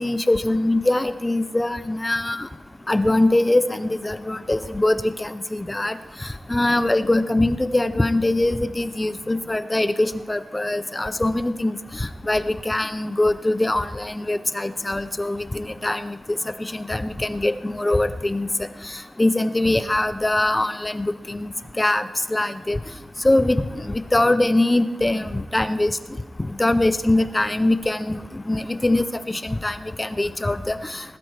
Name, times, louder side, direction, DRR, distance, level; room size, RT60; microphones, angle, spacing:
voice 1, 0.0-2.5 2.9-5.9 6.5-16.1 16.6-18.5 19.2-21.5 21.8-22.0 22.3-22.8 23.2-23.6 24.1-25.9 26.6-28.2 28.5-31.0, left 1 dB, 15° left, 12 dB, 0.4 m, -22 dB
20.0 x 13.0 x 3.2 m, 1.1 s
wide cardioid pair, 160°, 0 cm